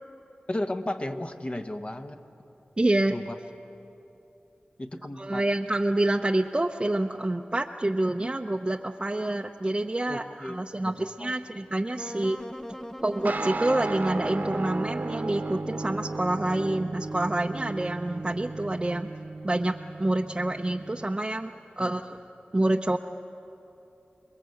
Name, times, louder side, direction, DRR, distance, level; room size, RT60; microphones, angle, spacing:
voice 1, 0.5-2.2 3.1-3.4 4.8-5.4 10.1-11.3 21.8-21.9, left 1 dB, 35° left, 6 dB, 1.4 m, -34 dB
voice 2, 2.8-3.1 5.2-12.4 13.0-19.1 19.4-19.7 20.0-22.2 22.5-23.0, right 1 dB, 25° right, 1 dB, 0.8 m, -27 dB
Wind instrument woodwind instrument, 12.0-17.1, equal, 10° left, 0.8 m, -41 dB
sound 1, 13.2-21.0, right 3 dB, 60° right, 1.2 m, -35 dB
28.0 x 21.0 x 8.0 m, 2.9 s
wide cardioid pair, 60°, 3 cm